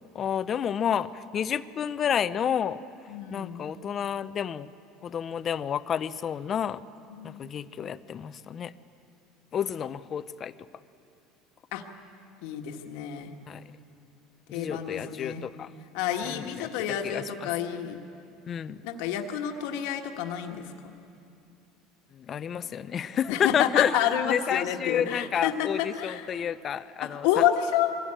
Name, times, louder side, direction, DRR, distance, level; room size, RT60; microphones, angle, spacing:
voice 1, 0.0-2.8 3.3-4.7 5.0-6.8 7.2-8.7 9.5-10.5 13.5-13.6 14.5-15.7 16.2-16.7 17.0-17.5 18.5-18.8 22.2-23.9 24.2-27.3, left 8 dB, 35° left, 14 dB, 0.6 m, -30 dB
voice 2, 3.1-3.6 7.1-7.5 11.7-11.8 12.4-13.3 14.5-15.4 15.9-18.0 18.8-20.9 23.3-26.3 27.0-28.0, left 10 dB, 75° left, 4 dB, 1.6 m, -29 dB
23.0 x 16.5 x 8.8 m, 2.7 s
supercardioid pair, 125°, 0 cm